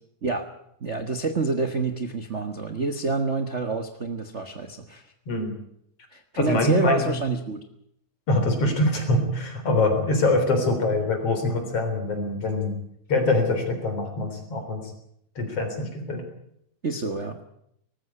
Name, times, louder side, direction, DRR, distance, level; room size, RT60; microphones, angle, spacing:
voice 1, 0.8-5.0 6.1-7.6 16.8-17.4, right 3 dB, 55° right, 8 dB, 0.7 m, -27 dB
voice 2, 6.4-7.2 8.3-12.7 13.1-14.9 15.4-16.2, left 2 dB, 50° left, 6 dB, 4.7 m, -24 dB
19.5 x 15.0 x 9.8 m, 0.73 s
omnidirectional pair, 3.5 m